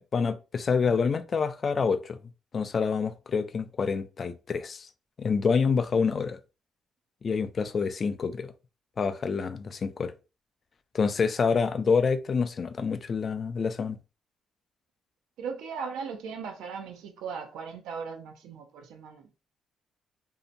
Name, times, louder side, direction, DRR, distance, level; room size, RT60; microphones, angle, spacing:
voice 1, 0.0-2.2 2.5-4.9 5.2-6.4 7.2-8.5 9.0-10.1 10.9-14.0, left 5 dB, 45° left, 0.3 m, -27 dB
voice 2, 15.4-19.3, right 6 dB, 90° right, 0.5 m, -38 dB
2.6 x 2.1 x 2.6 m
cardioid pair, 90°, 0 cm